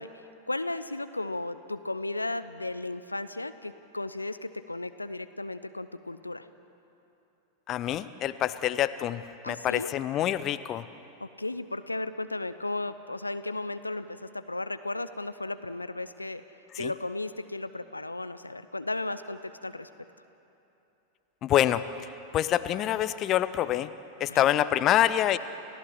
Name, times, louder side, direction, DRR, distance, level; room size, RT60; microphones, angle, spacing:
voice 1, 0.0-6.5 9.4-9.9 11.2-16.4 16.8-19.9 24.3-24.5, left 2 dB, 85° left, 12 dB, 0.7 m, -35 dB
voice 2, 7.7-10.8 16.8-16.9 21.4-21.8 22.3-23.9 24.2-25.4, left 12 dB, 35° left, 14 dB, 0.7 m, -26 dB
29.5 x 16.0 x 7.6 m, 2.9 s
figure-of-eight pair, 90°, 0 cm